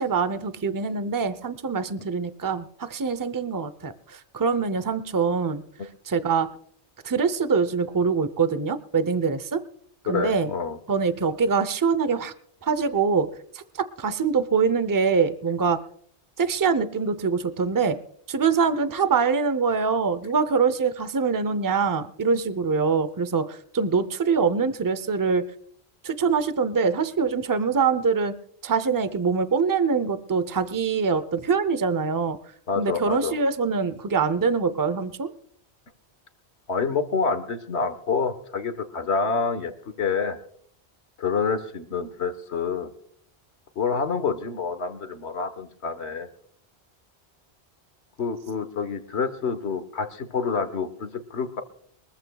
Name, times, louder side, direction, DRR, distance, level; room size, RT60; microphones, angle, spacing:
voice 1, 0.0-5.6 6.1-6.5 7.0-9.6 10.1-10.5 10.9-12.3 12.6-15.8 16.4-18.0 18.3-25.4 26.0-28.3 28.6-32.4 32.8-35.3, right 5 dB, 20° right, 13 dB, 0.6 m, -24 dB
voice 2, 10.1-10.8 32.7-33.4 36.7-39.7 40.0-40.4 41.2-42.9 43.7-46.3 48.2-51.6, left 5 dB, 80° left, 10 dB, 1.6 m, -27 dB
23.0 x 14.5 x 2.3 m, 0.62 s
omnidirectional pair, 1.1 m